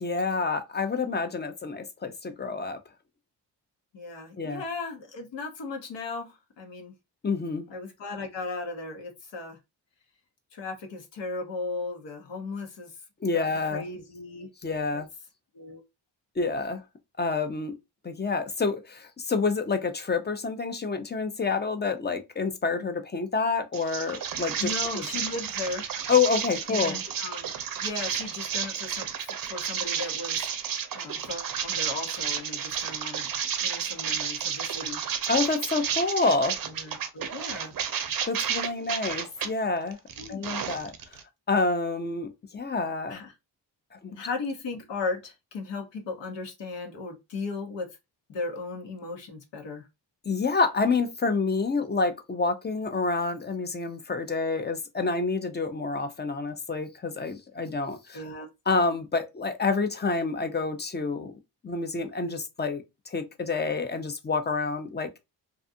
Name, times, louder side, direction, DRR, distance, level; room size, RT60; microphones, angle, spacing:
voice 1, 0.0-2.8 4.4-4.6 7.2-7.7 13.2-13.9 14.6-15.1 16.4-16.8 17.2-17.8 18.0-24.7 24.9-25.0 26.1-27.0 35.3-36.6 38.2-40.0 40.3-40.9 41.5-43.2 44.0-44.2 50.3-58.2 58.7-61.3 61.6-65.2, left 4 dB, 25° left, 0.5 m, -28 dB
voice 2, 3.9-6.9 7.7-9.6 10.5-12.9 13.3-14.5 14.9-15.0 15.5-15.8 24.6-25.9 26.7-27.5 27.8-30.4 30.9-33.3 33.6-35.0 36.6-37.7 40.2-40.5 43.1-43.3 44.1-47.9 48.3-49.9 58.1-58.5, left 3 dB, 75° left, 0.9 m, -36 dB
sound 1, 23.7-39.5 39.9-41.2, right 8 dB, 50° right, 0.6 m, -31 dB
2.5 x 2.3 x 2.5 m
cardioid pair, 60°, 44 cm